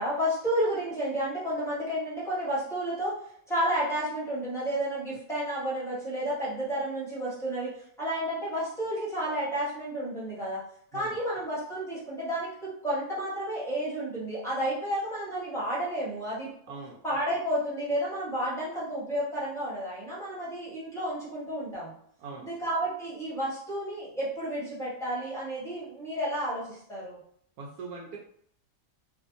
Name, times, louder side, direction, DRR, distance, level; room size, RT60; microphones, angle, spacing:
voice 1, 0.0-3.2 3.5-7.7 8.0-10.6 10.9-16.5 17.0-21.9 22.5-27.2, right 1 dB, ahead, -8 dB, 0.9 m, -31 dB
voice 2, 22.2-22.5 27.6-28.2, right 4 dB, 80° right, -1 dB, 1.1 m, -41 dB
2.6 x 2.4 x 2.5 m, 0.64 s
omnidirectional pair, 1.6 m